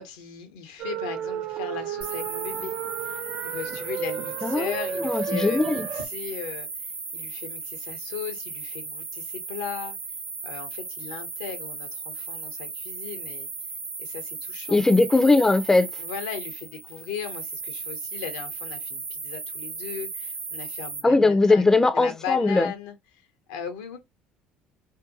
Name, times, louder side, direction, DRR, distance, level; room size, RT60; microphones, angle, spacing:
voice 1, 0.0-2.7 3.0-10.0 10.4-13.5 14.0-14.8 16.0-21.7 21.9-22.9 23.5-24.0, left 7 dB, 85° left, 0.6 m, -37 dB
sound 1, 0.8-6.1, right 8 dB, 55° right, 0.4 m, -32 dB
sound 2, 2.0-21.0, right 4 dB, 35° right, 0.8 m, -36 dB
voice 2, 5.0-5.8 14.7-15.9 21.0-22.7, left 3 dB, 15° left, 0.4 m, -19 dB
2.6 x 2.2 x 2.5 m
hypercardioid pair, 70°, 3 cm